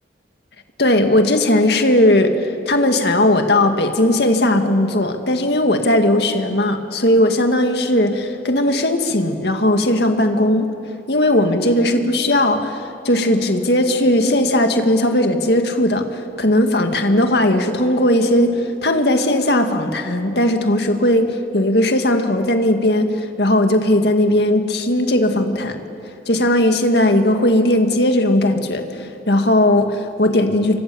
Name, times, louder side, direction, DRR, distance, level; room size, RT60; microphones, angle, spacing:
voice 1, 0.8-10.7 11.1-25.8 26.3-30.8, left 1 dB, 60° left, 5 dB, 2.0 m, -17 dB
29.0 x 24.5 x 7.1 m, 2.9 s
head